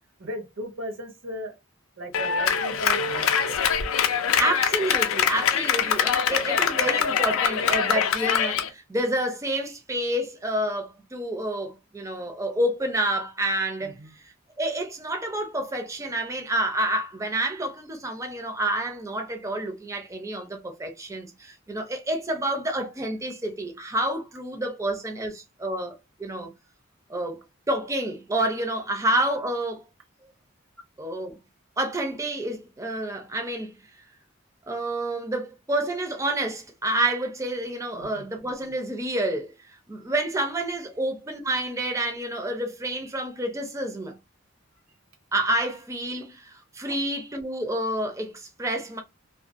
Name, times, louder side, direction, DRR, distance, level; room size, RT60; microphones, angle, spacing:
voice 1, 0.2-1.5 2.0-3.6 13.8-14.1 37.9-38.3, right 1 dB, 70° right, 0.8 m, -36 dB
Clapping, 2.1-8.7, left 7 dB, 80° left, 0.4 m, -23 dB
voice 2, 4.4-14.0 14.2-26.5 27.1-27.4 27.7-29.8 31.0-31.4 31.8-33.8 34.7-44.2 45.3-49.0, right 1 dB, 15° right, 0.4 m, -29 dB
2.5 x 2.2 x 2.4 m
head